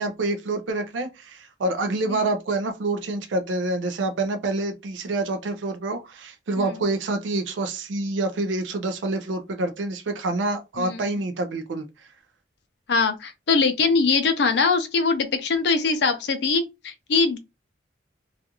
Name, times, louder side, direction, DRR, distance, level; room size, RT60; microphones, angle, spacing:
voice 1, 0.0-11.8, right 2 dB, 80° right, 0.4 m, -27 dB
voice 2, 12.9-17.4, left 4 dB, 65° left, 0.4 m, -22 dB
2.4 x 2.3 x 2.8 m
head